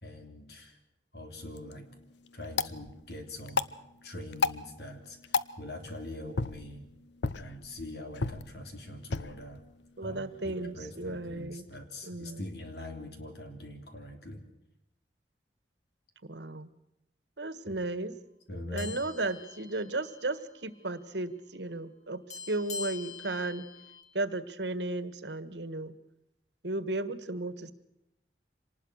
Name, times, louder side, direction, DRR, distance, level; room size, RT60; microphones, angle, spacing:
voice 1, 0.0-0.8 1.1-1.9 2.3-3.7 4.0-6.9 7.3-9.6 10.0-14.4 17.7-17.8 18.5-18.9, left 1 dB, 65° left, 5 dB, 3.7 m, -43 dB
sound 1, 1.4-11.5, left 4 dB, 85° left, 0.8 m, -37 dB
voice 2, 10.0-11.6 12.0-12.4 16.3-16.7 17.4-18.1 18.7-23.7 24.1-25.9 26.6-27.7, right 2 dB, 80° right, 13 dB, 1.5 m, -34 dB
sound 2, 18.8-20.4 20.7-20.9 22.3-24.0, left 5 dB, 45° left, 2.5 m, -44 dB
26.0 x 19.5 x 6.5 m, 0.84 s
head